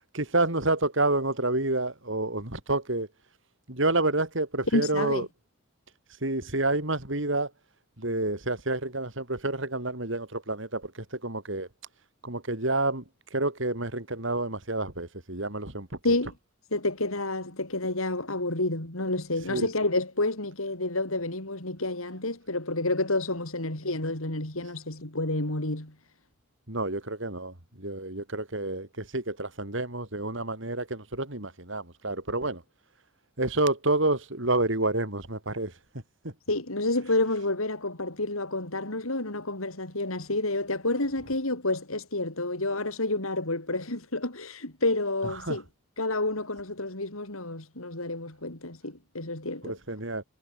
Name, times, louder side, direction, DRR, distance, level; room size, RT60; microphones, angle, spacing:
voice 1, 0.1-3.1 3.7-5.3 6.2-7.5 8.0-11.7 12.2-13.0 13.3-15.9 19.5-19.7 26.7-32.6 33.4-35.7 36.2-36.3 45.2-45.6 49.6-50.2, right 2 dB, 60° right, 3.7 m, -29 dB
voice 2, 4.7-5.2 16.0-16.3 16.7-25.9 36.5-45.6 46.0-49.7, left 2 dB, 85° left, 5.0 m, -29 dB
head